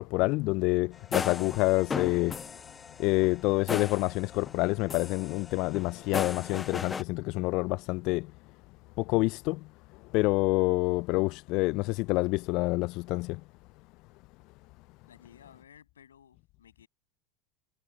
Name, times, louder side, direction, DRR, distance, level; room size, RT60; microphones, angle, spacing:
voice 1, 0.0-2.4 3.0-8.3 9.0-9.7 10.1-13.4, left 23 dB, 50° left, 0.5 m, -27 dB
sound 1, 0.9-4.6 4.9-7.0, left 5 dB, 20° left, 1.2 m, -36 dB
voice 2, 15.1-16.9, left 8 dB, 80° left, 7.4 m, -56 dB
hypercardioid pair, 85°, 0 cm